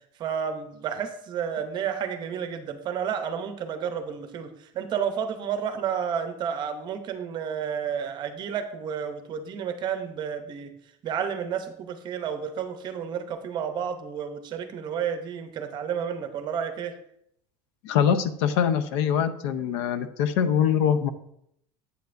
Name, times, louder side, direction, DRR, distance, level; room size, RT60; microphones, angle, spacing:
voice 1, 0.2-4.5 4.7-10.7 11.0-16.9, right 7 dB, 30° right, 8 dB, 0.7 m, -31 dB
voice 2, 17.8-21.1, left 8 dB, 85° left, 12 dB, 0.6 m, -23 dB
8.1 x 8.0 x 2.5 m, 0.73 s
cardioid pair, 170°, 14 cm